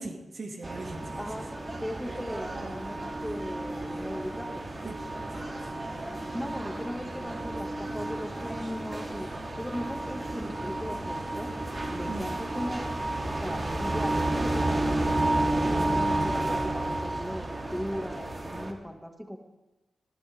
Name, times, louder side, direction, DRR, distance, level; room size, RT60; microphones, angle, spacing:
voice 1, 0.0-1.3 4.8-5.8 12.1-12.4, right 2 dB, 55° right, 2 dB, 2.2 m, -41 dB
sound 1, 0.6-18.7, right 1 dB, 40° right, 2.7 m, -31 dB
voice 2, 1.2-1.5 1.8-4.7 6.3-9.3 9.6-11.5 11.9-12.9 13.3-19.4, equal, ahead, 3 dB, 2.0 m, -38 dB
20.5 x 13.0 x 3.6 m, 1.0 s
cardioid pair, 50°, 0 cm